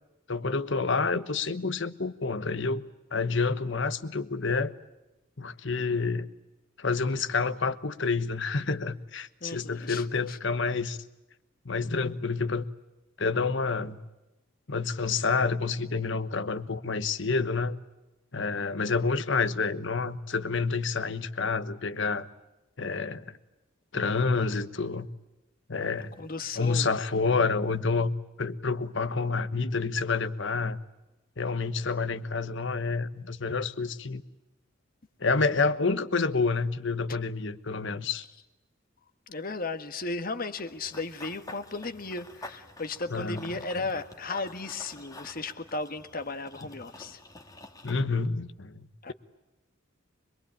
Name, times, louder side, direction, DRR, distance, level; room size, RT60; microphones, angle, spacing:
voice 1, 0.3-2.8 3.1-4.7 5.4-6.3 6.8-11.0 11.6-12.6 13.2-14.0 14.7-17.8 18.3-22.3 22.8-23.4 23.9-25.1 25.7-26.1 26.5-28.1 28.4-30.8 31.4-34.2 35.2-38.2 43.1-43.4 43.8-43.9 47.8-49.1, left 4 dB, 60° left, 1.2 m, -28 dB
voice 2, 9.4-10.4 25.8-25.9 26.2-26.9 39.3-47.2 49.0-49.1, left 3 dB, 45° left, 1.5 m, -35 dB
Run / Bird vocalization bird call bird song, 40.6-48.0, left 2 dB, 15° left, 1.7 m, -48 dB
26.0 x 22.0 x 8.7 m
head